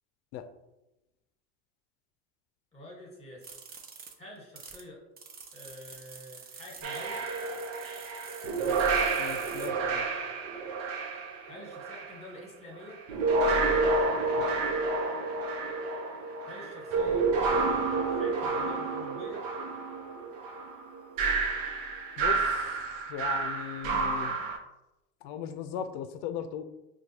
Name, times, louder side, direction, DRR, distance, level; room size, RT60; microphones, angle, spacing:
voice 1, 2.7-3.5 4.2-5.0 5.5-7.2 11.4-13.0 16.4-17.3 18.0-19.5, left 1 dB, 15° left, -1 dB, 1.3 m, -47 dB
sound 1, 3.4-4.8 5.2-9.7, right 5 dB, 25° right, 0.4 m, -48 dB
sound 2, 6.8-12.2 12.9-24.6, right 3 dB, 75° right, 0.7 m, -30 dB
voice 2, 9.2-10.0 14.4-14.5 22.2-22.8 23.1-24.4 25.2-26.6, left 9 dB, 65° left, 10 dB, 0.5 m, -38 dB
4.5 x 2.3 x 2.8 m, 0.95 s
supercardioid pair, 90°, 39 cm